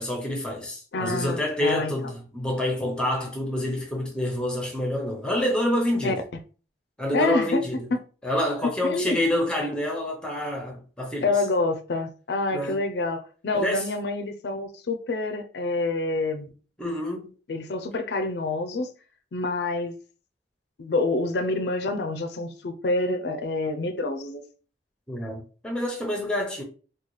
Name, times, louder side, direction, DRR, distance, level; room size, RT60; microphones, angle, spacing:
voice 1, 0.0-6.2 7.0-7.9 8.2-11.3 12.5-12.8 13.5-13.8 16.8-17.3 25.1-26.6, left 1 dB, 5° left, 0.8 m, -27 dB
voice 2, 0.9-1.9 6.0-6.1 7.1-7.6 7.9-8.0 8.8-9.2 11.2-16.5 17.5-18.9 19.3-20.0 20.8-24.4, left 2 dB, 70° left, 0.4 m, -27 dB
3.8 x 2.3 x 3.1 m
head